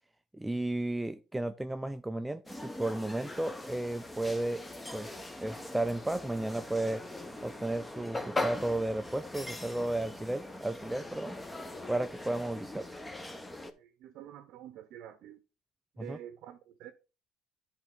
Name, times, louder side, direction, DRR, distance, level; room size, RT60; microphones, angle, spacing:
voice 1, 0.3-4.7 4.9-7.1 7.4-11.4 11.9-13.0 16.1-16.2, right 1 dB, 5° right, 0.3 m, -33 dB
sound 1, 2.5-13.7, left 2 dB, 10° left, 0.8 m, -41 dB
voice 2, 13.8-15.4 15.9-16.9, right 11 dB, 65° right, 0.7 m, -48 dB
10.5 x 4.3 x 3.8 m
cardioid pair, 120°, 0 cm